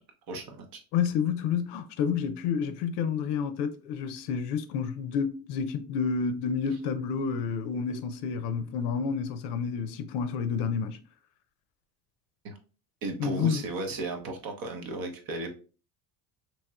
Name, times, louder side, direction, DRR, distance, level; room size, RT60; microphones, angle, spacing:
voice 1, 0.3-0.8 12.4-12.6 13.0-15.5, right 2 dB, 50° right, 0.9 m, -35 dB
voice 2, 0.9-11.0 13.2-13.6, left 6 dB, 60° left, 0.5 m, -29 dB
3.0 x 2.8 x 2.3 m
supercardioid pair, 85°, 45 cm